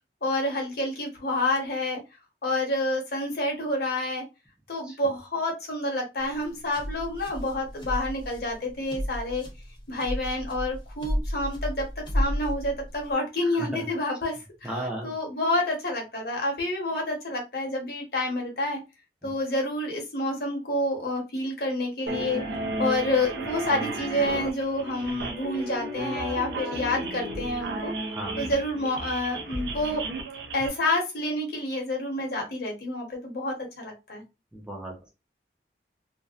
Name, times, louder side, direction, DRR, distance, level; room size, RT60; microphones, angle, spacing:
voice 1, 0.2-2.0 2.4-4.2 4.7-9.5 9.9-18.8 19.2-22.4 22.8-27.9 28.4-30.0 30.5-34.2, left 1 dB, 60° left, 1 dB, 0.8 m, -28 dB
sound 1, 6.2-13.1, equal, 25° left, 0.7 m, -32 dB
voice 2, 14.6-15.1 19.2-19.3 28.1-28.4 34.5-35.1, right 1 dB, 5° right, -2 dB, 0.5 m, -35 dB
sound 2, 22.1-30.7, right 2 dB, 65° right, 0.5 m, -34 dB
2.5 x 2.1 x 2.3 m, 0.26 s
head